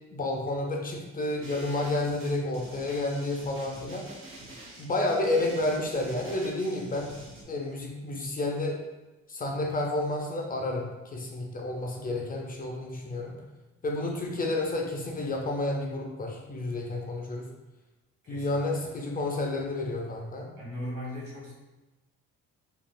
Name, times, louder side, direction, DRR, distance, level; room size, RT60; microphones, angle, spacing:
voice 1, 0.1-4.1 4.8-7.1 7.5-8.8 9.3-13.3 13.8-17.5 18.3-20.5, left 2 dB, 30° left, 0 dB, 0.4 m, -30 dB
sound 1, 1.4-7.4, right 1 dB, 40° right, 0.7 m, -46 dB
voice 2, 18.2-18.9 20.6-21.5, left 1 dB, 75° right, -5 dB, 1.2 m, -38 dB
3.2 x 2.4 x 2.2 m, 1.1 s
cardioid pair, 90°, 30 cm